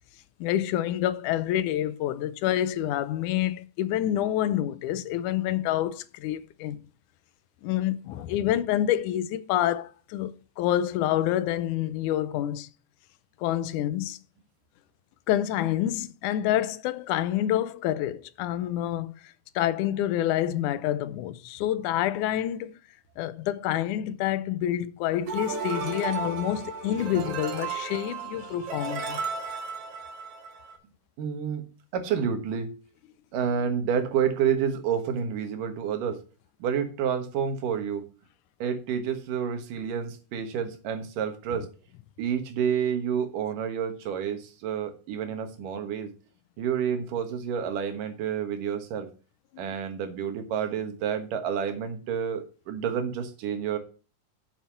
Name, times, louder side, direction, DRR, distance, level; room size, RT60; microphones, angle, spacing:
voice 1, 0.4-6.8 7.6-12.7 13.4-14.2 15.3-22.7 23.2-29.3, left 12 dB, 80° left, 2.1 m, -27 dB
sound 1, 25.3-30.8, right 5 dB, 55° right, 2.4 m, -34 dB
voice 2, 31.2-31.6 31.9-32.7 33.3-36.2 36.6-38.1 38.6-41.7 42.2-46.1 46.6-49.1 49.6-53.8, right 7 dB, 90° right, 3.0 m, -29 dB
7.4 x 7.3 x 5.7 m
omnidirectional pair, 3.7 m